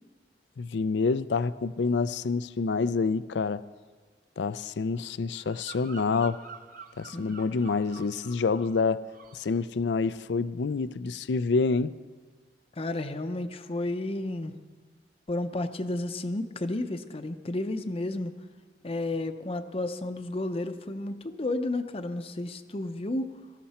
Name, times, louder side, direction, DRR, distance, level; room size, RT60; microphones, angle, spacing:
voice 1, 0.6-3.6 4.4-6.4 7.0-9.0 9.3-11.9, left 4 dB, 75° left, 16 dB, 0.4 m, -27 dB
Bird vocalization bird call bird song, 5.3-8.8 9.1-9.5, right 6 dB, 50° right, 1.0 m, -48 dB
voice 2, 12.8-14.5 15.3-18.3 18.8-23.3, left 2 dB, 35° left, 8 dB, 0.7 m, -32 dB
19.0 x 14.0 x 4.3 m, 1.5 s
head